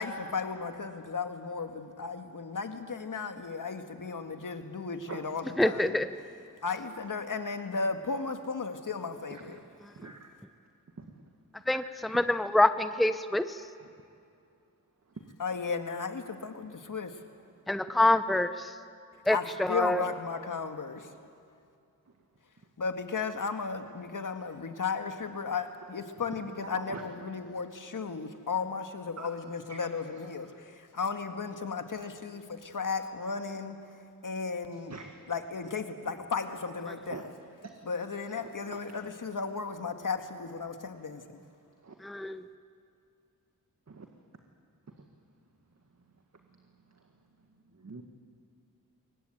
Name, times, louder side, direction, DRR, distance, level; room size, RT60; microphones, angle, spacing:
voice 1, 0.0-6.0 6.6-9.6 15.4-17.2 19.3-21.1 22.8-33.8 34.2-34.9 35.3-37.2 37.9-41.2, left 5 dB, 60° left, 6 dB, 2.0 m, -35 dB
voice 2, 5.1-5.5 9.3-10.3 11.0-11.2 11.7-11.8 13.8-13.9 15.1-15.3 22.1-22.2 26.6-27.0 29.2-30.6 34.7-35.1 37.1-37.2 37.6-37.7 38.4-38.8 41.8-42.0 43.9-44.1 44.9-45.1 45.9-48.0, right 4 dB, 45° right, 3 dB, 1.9 m, -47 dB
voice 3, 5.6-6.1 11.7-11.8 12.1-13.6 17.7-18.7 19.3-20.0 42.0-42.4, left 1 dB, ahead, 11 dB, 0.9 m, -26 dB
23.0 x 19.5 x 9.1 m, 2.5 s
cardioid pair, 55°, 36 cm